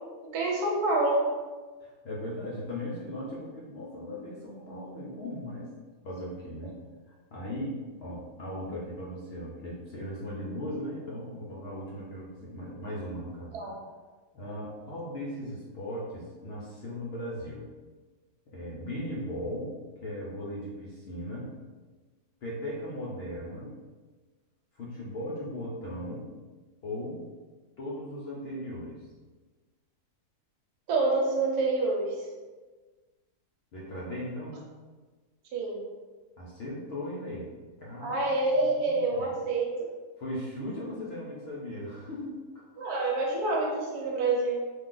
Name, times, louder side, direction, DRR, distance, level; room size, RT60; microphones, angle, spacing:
voice 1, 0.3-1.4 13.5-13.7 30.9-32.2 35.5-35.8 38.0-39.7 42.8-44.6, right 2 dB, 90° right, -2 dB, 1.2 m, -27 dB
voice 2, 1.8-5.7 6.0-6.8 7.3-13.6 14.3-17.7 18.5-21.6 22.4-23.7 24.7-26.3 26.8-27.2 27.8-29.0 33.7-34.6 36.4-37.5 37.8-39.3 40.2-42.6, left 1 dB, 65° left, -5 dB, 0.6 m, -38 dB
2.5 x 2.3 x 3.7 m, 1.4 s
omnidirectional pair, 1.6 m